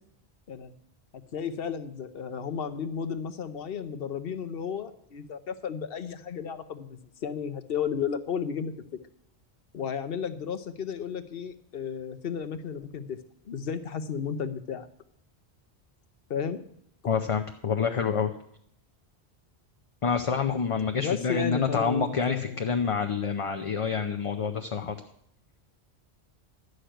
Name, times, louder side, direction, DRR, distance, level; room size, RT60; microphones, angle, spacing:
voice 1, 1.3-8.7 9.7-13.2 13.5-14.9 16.3-16.6 20.9-22.7, left 7 dB, 65° left, 11 dB, 1.0 m, -33 dB
voice 2, 17.1-18.3 20.0-24.9, left 6 dB, 35° left, 5 dB, 0.6 m, -27 dB
11.5 x 6.5 x 9.0 m, 0.71 s
omnidirectional pair, 1.1 m